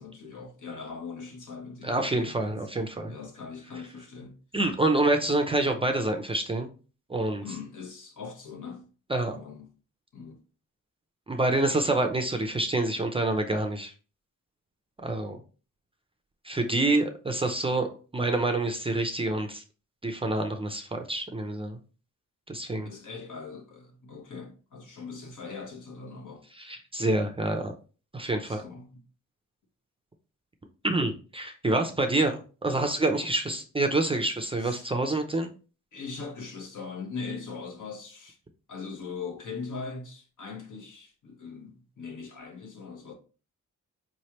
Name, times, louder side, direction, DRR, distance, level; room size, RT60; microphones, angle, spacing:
voice 1, 0.0-2.6 3.1-4.4 7.4-8.9 9.3-9.7 10.1-10.4 22.8-26.4 28.4-29.0 32.2-32.3 32.8-32.9 34.6-34.9 35.9-38.4 38.7-43.1, left 4 dB, 65° left, 1.2 m, -41 dB
voice 2, 1.8-3.1 4.5-6.7 7.1-7.4 9.1-9.3 11.3-13.9 15.0-15.4 16.4-17.9 18.1-19.6 20.0-21.8 22.5-22.9 26.6-27.7 28.1-28.6 30.8-35.5, right 2 dB, 15° right, 0.5 m, -27 dB
4.8 x 3.2 x 2.9 m
wide cardioid pair, 120°, 33 cm